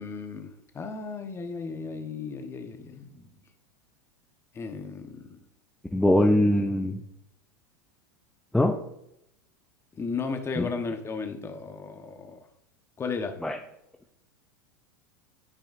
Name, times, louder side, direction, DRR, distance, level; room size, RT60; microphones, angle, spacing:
voice 1, 0.0-3.2 4.5-5.4 10.0-12.4 13.0-13.4, left 4 dB, 25° left, 6 dB, 1.1 m, -35 dB
voice 2, 5.9-7.0 8.5-8.8 10.6-10.7 13.4-13.6, left 1 dB, 5° left, 3 dB, 0.6 m, -22 dB
12.5 x 4.9 x 2.6 m, 0.77 s
hypercardioid pair, 95°, 11 cm